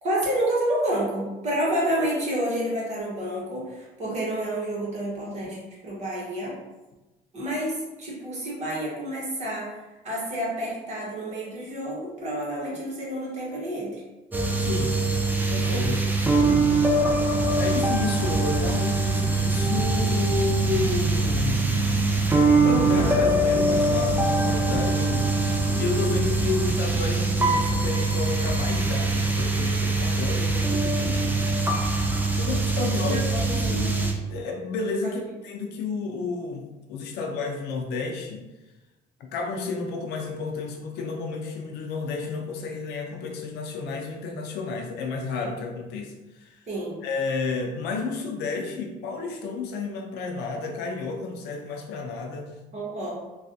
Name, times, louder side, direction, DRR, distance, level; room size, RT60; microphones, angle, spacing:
voice 1, 0.0-6.6 7.3-14.0 32.8-34.0 35.0-35.1 46.7-47.0 52.7-53.2, right 1 dB, 40° right, -5 dB, 1.3 m, -29 dB
sound 1, 14.3-34.1, right 3 dB, 10° right, 0.4 m, -23 dB
voice 2, 14.6-15.0 15.5-16.1 17.5-21.8 22.6-31.4 32.3-38.5 39.2-46.6 47.0-52.5, left 4 dB, 85° left, 2 dB, 0.5 m, -31 dB
sound 2, 19.2-34.0, right 1 dB, 90° right, 0.6 m, -36 dB
3.2 x 2.3 x 2.7 m, 1.1 s
cardioid pair, 110°, 17 cm